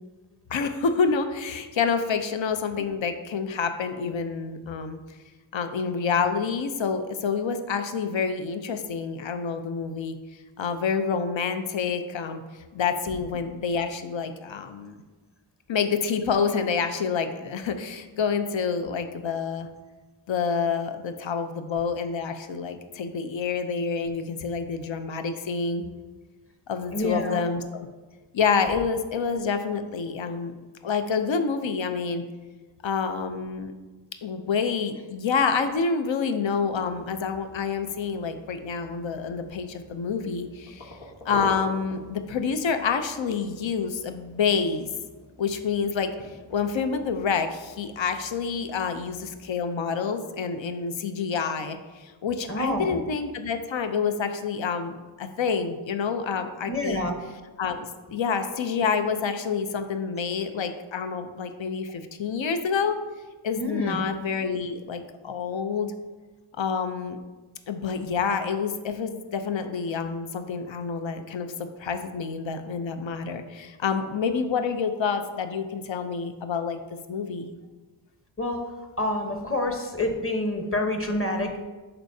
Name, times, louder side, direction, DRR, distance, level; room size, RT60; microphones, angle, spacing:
voice 1, 0.5-5.0 5.5-10.2 10.6-12.4 12.7-15.0 15.7-19.7 20.3-25.9 26.7-27.9 28.3-30.5 30.8-32.2 32.8-33.7 34.2-41.0 41.2-44.9 45.4-46.1 46.5-57.1 57.6-63.0 63.4-65.9 66.6-67.2 67.7-71.5 71.8-76.8 77.1-77.5, left 5 dB, 65° left, 8 dB, 0.7 m, -28 dB
voice 2, 26.9-27.5 52.5-53.0 56.7-57.1 63.6-64.0 78.4-81.6, left 1 dB, 25° left, 4 dB, 1.0 m, -28 dB
sound 1, 36.6-49.5, equal, 80° left, 1.8 m, -45 dB
11.0 x 4.4 x 2.7 m, 1.3 s
wide cardioid pair, 65°, 49 cm